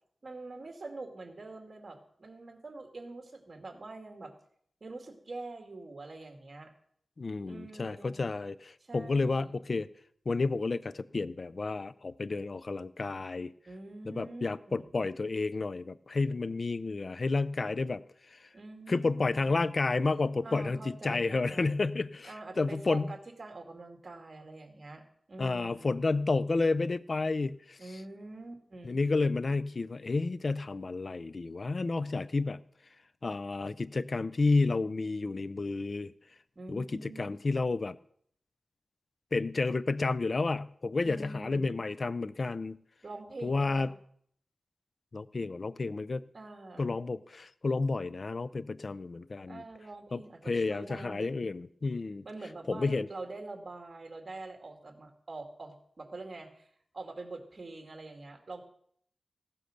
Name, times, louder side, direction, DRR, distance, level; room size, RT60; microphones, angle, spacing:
voice 1, 0.2-4.3 4.8-6.7 7.5-8.2 8.8-9.6 13.7-14.9 18.5-19.6 20.4-21.8 22.2-25.0 25.3-26.0 27.8-29.0 36.6-37.3 41.0-41.8 43.0-43.9 46.3-46.9 49.5-51.5 52.2-56.7 56.9-58.6, right 2 dB, 45° right, 3 dB, 2.4 m, -45 dB
voice 2, 7.2-9.9 10.3-13.5 14.1-18.5 18.9-23.1 25.4-28.0 28.8-32.6 33.2-36.1 36.7-38.0 39.3-42.8 43.4-43.9 45.1-46.2 46.8-49.6 50.1-52.2 52.7-53.1, left 3 dB, 50° left, 16 dB, 0.4 m, -31 dB
16.0 x 7.7 x 6.7 m, 0.65 s
wide cardioid pair, 105°, 0 cm